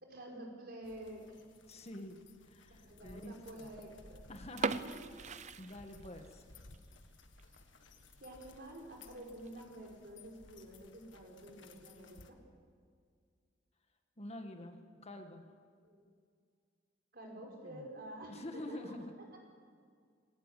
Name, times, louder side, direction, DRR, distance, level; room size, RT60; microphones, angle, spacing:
voice 1, 0.0-1.4 2.8-5.3 8.2-12.4 15.8-16.0 17.1-18.9 19.3-19.4, right 1 dB, 55° right, 0 dB, 5.3 m, -50 dB
sound 1, 0.8-12.3, left 3 dB, 90° left, 1.7 m, -59 dB
voice 2, 1.7-2.2 2.5-3.7 4.3-4.8 5.6-6.4 14.2-15.5 17.6-17.9 18.3-19.1, left 1 dB, 35° left, 5 dB, 1.7 m, -47 dB
sound 2, 4.5-6.4 6.7-6.8 7.4-7.6 8.0-8.1 8.3-8.4 9.2-9.5, right 5 dB, 40° right, 0.6 m, -39 dB
20.0 x 18.5 x 8.4 m, 2.1 s
head